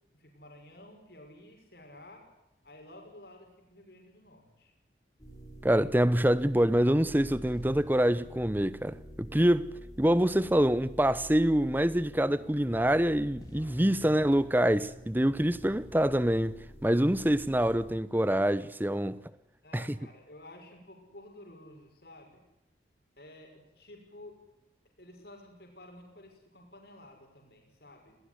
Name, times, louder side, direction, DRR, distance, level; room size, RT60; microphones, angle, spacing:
voice 1, 0.1-2.2 2.6-4.7 10.4-10.7 14.0-14.3 19.6-22.4 23.2-24.4 25.0-28.2, left 1 dB, 60° left, 6.0 m, -52 dB
sound 1, 5.2-17.9, right 1 dB, 20° left, 5.6 m, -48 dB
voice 2, 5.6-16.6 16.8-19.2 19.7-19.9, right 1 dB, 10° right, 0.8 m, -26 dB
20.0 x 18.5 x 9.8 m
head